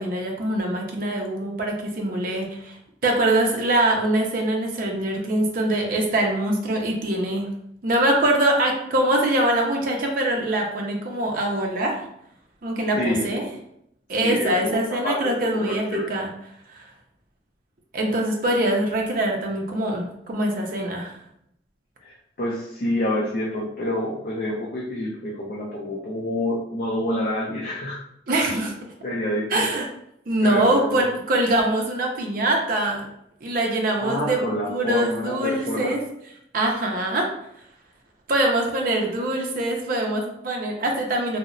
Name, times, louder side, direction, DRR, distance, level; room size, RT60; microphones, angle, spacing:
voice 1, 0.0-2.8 3.0-7.5 7.8-12.0 12.6-13.5 14.1-16.3 16.7-16.9 17.9-21.1 28.3-28.9 29.5-29.8 30.3-33.1 33.4-34.4 34.7-36.0 36.5-37.3 38.3-41.4, right 1 dB, 50° right, 0 dB, 0.4 m, -23 dB
voice 2, 13.0-13.3 14.2-16.1 22.0-28.0 28.4-28.6 29.0-29.7 30.4-31.1 34.0-36.0, left 1 dB, 50° left, -4 dB, 0.4 m, -28 dB
2.8 x 2.0 x 2.5 m, 0.76 s
head